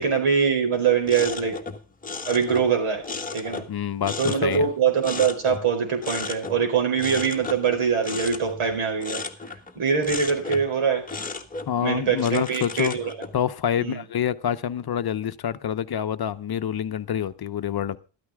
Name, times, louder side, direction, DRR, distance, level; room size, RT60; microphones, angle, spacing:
voice 1, 0.0-1.6 2.2-3.0 3.3-3.6 4.2-9.2 9.8-11.0 11.8-13.1 13.8-14.0, right 6 dB, 85° right, 4.7 m, -23 dB
sound 1, 1.0-3.8 4.0-5.8 6.0-6.6 7.0-9.8 10.0-10.7 11.1-13.4, left 4 dB, 15° left, 1.4 m, -35 dB
voice 2, 3.7-4.7 11.7-12.9 13.3-18.0, left 9 dB, 50° left, 0.8 m, -27 dB
13.0 x 13.0 x 3.6 m
wide cardioid pair, 145°, 49 cm